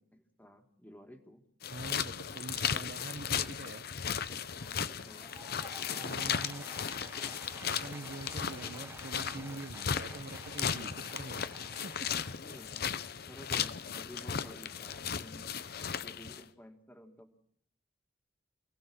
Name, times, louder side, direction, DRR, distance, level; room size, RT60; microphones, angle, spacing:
voice 1, 0.0-1.4 4.3-5.4 5.7-6.2 10.7-11.1 12.4-12.9 13.3-15.5 16.0-17.3, left 1 dB, 10° left, 6 dB, 2.1 m, -53 dB
sound 1, 1.6-16.4, left 7 dB, 60° left, 0.8 m, -36 dB
voice 2, 1.7-3.9 5.9-6.7 7.6-12.3, right 3 dB, 60° right, 10 dB, 1.0 m, -45 dB
Applause / Crowd, 4.9-13.2, right 2 dB, 15° right, 1.1 m, -52 dB
28.0 x 18.0 x 6.3 m, 0.68 s
head